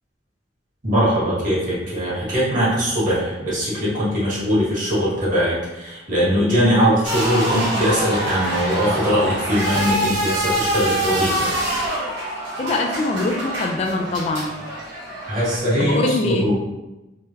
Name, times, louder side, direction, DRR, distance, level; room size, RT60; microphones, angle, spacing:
voice 1, 0.8-11.3 15.3-16.5, equal, 50° right, -8 dB, 1.5 m, -21 dB
sound 1, 7.0-15.6, right 1 dB, 85° right, 1.5 m, -25 dB
voice 2, 12.6-14.5 15.8-16.5, left 2 dB, 35° left, 3 dB, 0.3 m, -23 dB
3.7 x 2.1 x 2.8 m, 1.0 s
head